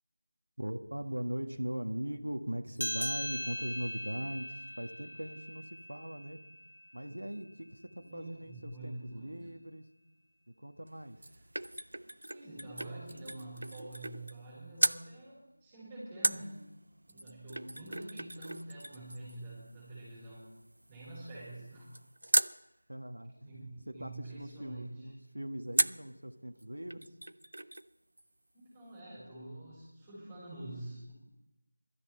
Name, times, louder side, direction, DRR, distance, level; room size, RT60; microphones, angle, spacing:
voice 1, 0.6-6.4 6.9-9.9 10.6-11.2 22.9-27.1, right 1 dB, 90° right, 6 dB, 1.5 m, -40 dB
sound 1, 2.8-7.7, left 1 dB, 90° left, 0.4 m, -40 dB
voice 2, 8.0-9.5 11.4-11.5 12.3-16.6 17.1-20.5 20.9-22.0 23.5-25.1 28.5-31.1, right 1 dB, 10° right, -10 dB, 5.5 m, -46 dB
sound 2, 10.9-14.5 14.8-15.0 16.2-22.6 25.8-26.1 26.6-26.7 26.9-27.9 28.2-28.3, right 1 dB, 70° right, 0.5 m, -36 dB
22.5 x 13.0 x 4.4 m, 0.94 s
figure-of-eight pair, 170°, 0 cm